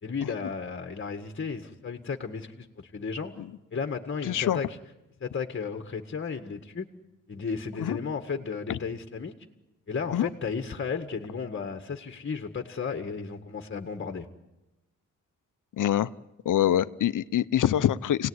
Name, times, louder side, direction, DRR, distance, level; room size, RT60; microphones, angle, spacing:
voice 1, 0.0-3.3 3.7-4.8 5.2-6.9 7.3-9.3 9.9-14.3, left 5 dB, 40° left, 7 dB, 1.8 m, -34 dB
voice 2, 4.2-4.6 7.8-8.0 8.7-8.8 10.1-10.3 15.8-16.1 16.4-18.3, left 11 dB, 75° left, 15 dB, 0.9 m, -25 dB
29.0 x 19.0 x 9.7 m, 1.0 s
cardioid pair, 90°, 31 cm